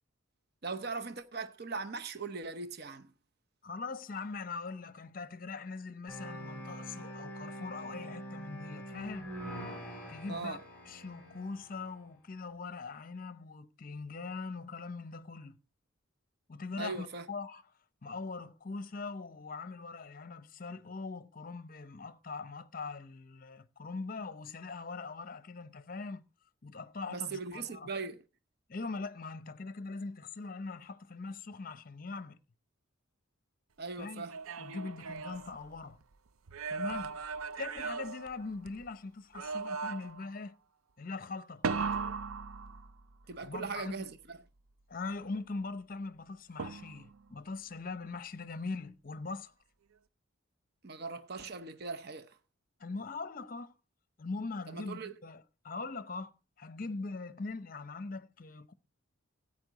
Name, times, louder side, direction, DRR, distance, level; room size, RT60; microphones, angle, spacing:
voice 1, 0.6-3.1 10.3-10.6 16.8-17.3 27.1-28.2 33.8-34.4 43.3-44.4 50.8-52.4 54.7-55.1, right 4 dB, 50° right, 0.8 m, -40 dB
voice 2, 3.6-9.3 10.1-10.6 10.9-15.6 16.5-17.6 18.0-26.2 26.6-27.9 28.7-32.4 34.0-34.2 34.6-36.0 36.7-37.2 37.6-40.5 41.0-41.9 43.4-44.0 44.9-49.5 52.8-53.7 54.2-56.3 56.6-58.7, left 3 dB, 40° left, 0.7 m, -41 dB
sound 1, 6.1-12.0, equal, 10° left, 3.2 m, -44 dB
sound 2, 34.1-36.0 36.5-38.9 39.3-40.3 41.6-43.2 46.6-47.2, right 4 dB, 85° right, 0.5 m, -38 dB
14.0 x 8.8 x 3.9 m
head